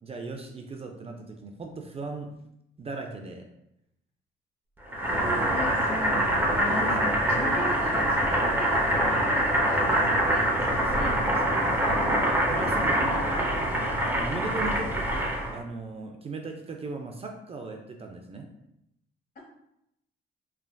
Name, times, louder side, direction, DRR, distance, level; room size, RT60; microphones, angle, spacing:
voice 1, 0.0-2.3 2.8-3.5 5.1-5.6 6.7-7.6 10.9-12.9 13.3-13.4 14.0-15.0 15.5-18.5, right 3 dB, 30° right, 3 dB, 0.3 m, -37 dB
Boiling, 4.9-15.6, right 1 dB, 10° right, 0.7 m, -25 dB
voice 2, 5.3-11.1 12.7-13.2, left 2 dB, 50° left, -1 dB, 1.0 m, -38 dB
3.3 x 2.3 x 2.2 m, 0.81 s
cardioid pair, 90°, 20 cm